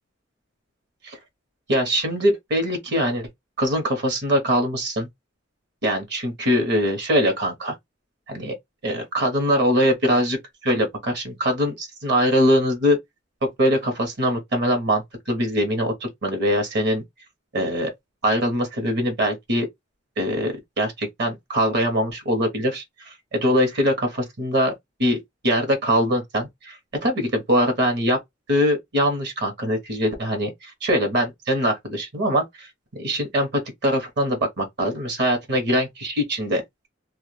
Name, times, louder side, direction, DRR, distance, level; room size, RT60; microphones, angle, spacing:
voice 1, 1.7-3.3 3.6-5.1 5.8-7.7 8.3-8.5 8.8-13.0 13.4-17.0 17.5-17.9 18.2-19.7 20.2-24.7 25.0-28.2 28.5-32.7 33.0-36.6, equal, 60° right, 1.0 m, -22 dB
2.4 x 2.2 x 3.1 m
head